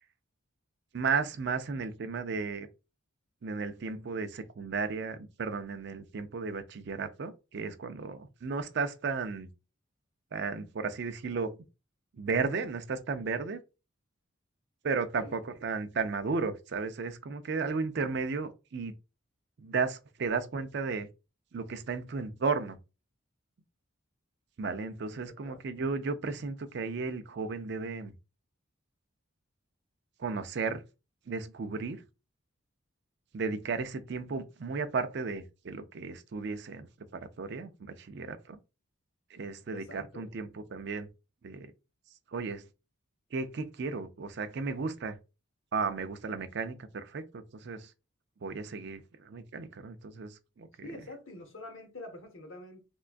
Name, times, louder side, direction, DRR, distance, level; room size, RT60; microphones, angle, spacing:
voice 1, 0.9-2.7 3.4-9.5 10.3-11.6 12.2-13.6 14.8-18.9 19.6-21.1 21.5-22.8 24.6-28.1 30.2-30.8 31.3-32.0 33.3-38.6 39.3-41.1 41.4-41.7 42.3-42.6 43.3-45.2 45.7-47.9 48.4-50.9, right 4 dB, 55° right, 0.4 m, -34 dB
voice 2, 39.7-40.3 50.8-52.8, left 2 dB, 75° left, 1.0 m, -46 dB
3.6 x 2.2 x 2.4 m
head